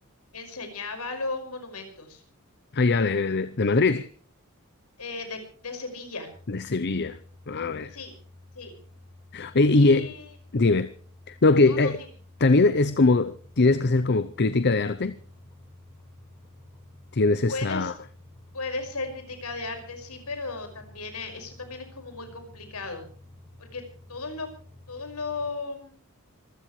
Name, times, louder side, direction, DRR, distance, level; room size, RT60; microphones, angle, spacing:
voice 1, 0.3-2.2 5.0-6.3 7.9-8.1 8.5-8.7 9.7-10.3 10.6-10.8 11.7-11.9 17.5-17.9 18.5-23.0 23.6-23.8 24.1-24.5 24.9-26.0, left 3 dB, 90° left, 5.6 m, -35 dB
voice 2, 2.7-4.1 6.5-7.2 7.5-7.9 9.3-10.1 10.5-10.9 11.3-12.0 12.4-15.2 17.1-17.9, left 3 dB, 50° left, 0.7 m, -21 dB
sound 1, 6.3-25.5, left 1 dB, 20° left, 3.0 m, -51 dB
26.0 x 15.5 x 3.2 m
head